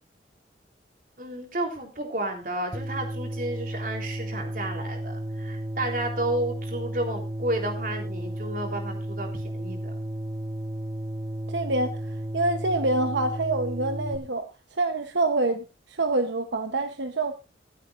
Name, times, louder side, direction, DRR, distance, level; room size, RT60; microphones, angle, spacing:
voice 1, 1.2-9.9, right 1 dB, 50° right, 3.5 m, -32 dB
sound 1, 2.7-14.2, equal, 20° right, 1.1 m, -33 dB
voice 2, 11.5-17.4, right 2 dB, 85° right, 1.0 m, -26 dB
25.0 x 8.3 x 2.5 m
head